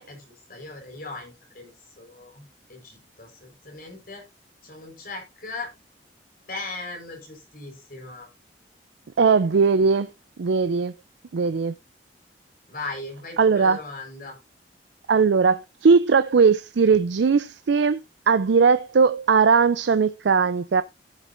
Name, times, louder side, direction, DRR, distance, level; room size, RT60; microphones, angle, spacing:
voice 1, 0.0-2.4 2.7-4.2 4.6-5.7 6.5-8.3 12.7-14.3, left 3 dB, 55° left, 4.6 m, -38 dB
voice 2, 9.2-10.1 10.4-10.9 11.3-11.7 13.4-13.8 15.1-18.0 18.3-20.8, right 5 dB, 85° right, 0.5 m, -19 dB
14.5 x 7.4 x 2.6 m
head